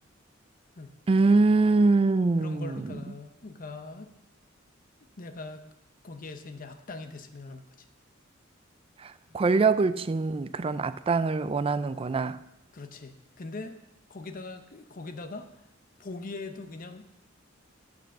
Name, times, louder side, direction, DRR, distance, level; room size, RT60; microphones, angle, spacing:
voice 1, 1.1-3.0 9.0-12.4, right 3 dB, 25° right, 0.3 m, -24 dB
voice 2, 2.4-4.1 5.2-5.6 6.0-7.7 9.3-9.4 12.7-13.8 14.1-15.5 16.0-17.1, left 3 dB, 45° left, 0.8 m, -41 dB
8.1 x 7.7 x 6.6 m
head